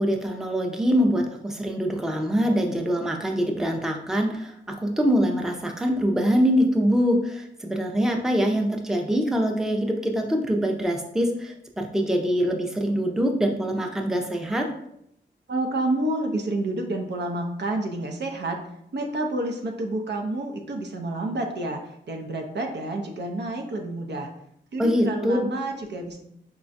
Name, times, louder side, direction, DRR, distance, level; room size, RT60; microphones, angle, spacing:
voice 1, 0.0-14.7 24.8-25.4, equal, ahead, 2 dB, 0.5 m, -24 dB
voice 2, 15.5-18.6 18.9-24.3 24.7-26.2, right 2 dB, 65° right, 3 dB, 0.6 m, -29 dB
4.2 x 2.2 x 2.6 m, 0.74 s
cardioid pair, 40°, 20 cm